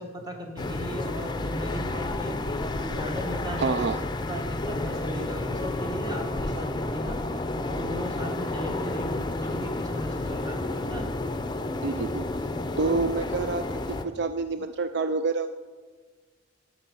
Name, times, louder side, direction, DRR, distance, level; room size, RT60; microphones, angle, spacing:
voice 1, 0.0-2.4 2.8-3.9 4.3-7.2 7.6-11.1 12.8-13.0, equal, 20° right, 1 dB, 1.8 m, -37 dB
sound 1, 0.6-14.0, left 2 dB, 25° left, 0.6 m, -31 dB
voice 2, 3.6-4.0 11.8-12.2 12.8-15.5, right 4 dB, 60° right, 10 dB, 0.4 m, -27 dB
11.5 x 6.6 x 6.9 m, 1.4 s
head